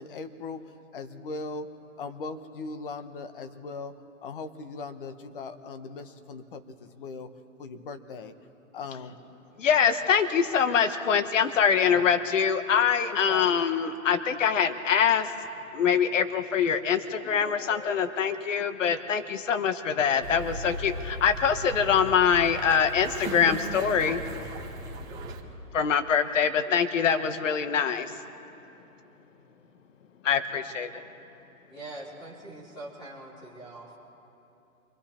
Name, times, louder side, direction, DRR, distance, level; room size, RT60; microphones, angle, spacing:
voice 1, 0.0-1.7 2.0-3.9 4.2-7.3 7.6-8.3 8.7-9.2 13.3-13.6, left 3 dB, 35° left, 10 dB, 1.1 m, -39 dB
voice 2, 9.6-15.3 15.7-24.2 25.7-28.1 30.2-31.0, left 7 dB, 60° left, 10 dB, 1.3 m, -24 dB
sound 1, 20.2-25.4, right 1 dB, 10° right, 1.1 m, -37 dB
voice 3, 31.7-34.0, right 2 dB, 10° left, -5 dB, 3.6 m, -43 dB
28.0 x 24.5 x 4.4 m, 2.9 s
hypercardioid pair, 160°, 43 cm